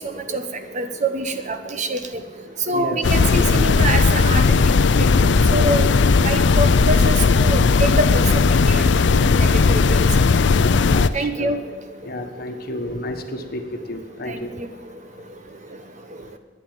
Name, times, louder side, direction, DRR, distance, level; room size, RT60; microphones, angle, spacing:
voice 1, 0.0-2.2 2.6-6.0 6.2-10.0 11.1-11.6 14.3-14.7, right 2 dB, 40° right, 8 dB, 1.1 m, -26 dB
sound 1, 3.0-11.1, left 4 dB, 70° left, 0.5 m, -16 dB
voice 2, 10.9-11.5 12.0-13.2 13.5-13.6 13.9-14.5, left 1 dB, 55° left, 6 dB, 1.4 m, -30 dB
11.5 x 9.6 x 9.0 m, 1.3 s
head